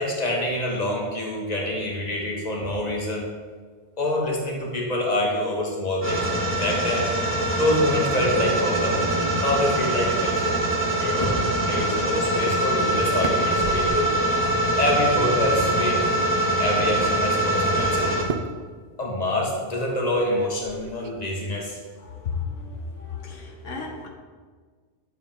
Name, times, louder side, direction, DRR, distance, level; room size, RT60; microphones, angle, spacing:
voice 1, 0.0-3.3 4.0-6.2 6.5-7.1 7.5-9.0 9.4-10.6 11.0-11.4 11.7-14.1 14.8-16.0 16.6-18.1 19.0-21.8, left 1 dB, 35° left, -2 dB, 1.9 m, -26 dB
sound 1, 6.0-18.2, right 1 dB, 10° left, 1.7 m, -23 dB
sound 2, 8.3-11.2 12.0-12.1 12.4-12.6 12.9-14.1 15.3-16.2 17.0-17.1 18.2-18.6 20.2-21.1, right 5 dB, 50° right, 0.5 m, -36 dB
voice 2, 22.0-24.1, left 5 dB, 90° left, 0 dB, 1.6 m, -33 dB
12.0 x 7.4 x 3.7 m, 1.5 s
omnidirectional pair, 1.2 m